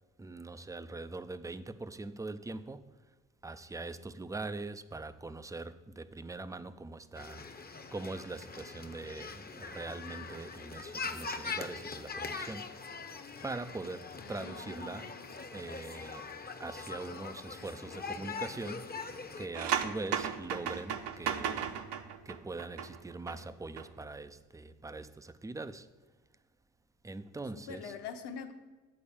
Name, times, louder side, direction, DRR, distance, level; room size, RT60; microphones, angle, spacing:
voice 1, 0.2-3.1 3.4-12.8 13.4-16.3 16.6-19.0 19.4-21.7 22.3-25.9 27.0-27.9, right 3 dB, 10° right, 0.4 m, -42 dB
sound 1, 7.2-19.5, left 4 dB, 20° left, 0.8 m, -42 dB
voice 2, 14.2-15.3 27.7-28.5, left 5 dB, 55° left, 1.2 m, -44 dB
sound 2, 19.5-23.4 23.6-23.9, right 8 dB, 60° right, 0.9 m, -35 dB
8.6 x 4.2 x 7.1 m
hypercardioid pair, 55°, 48 cm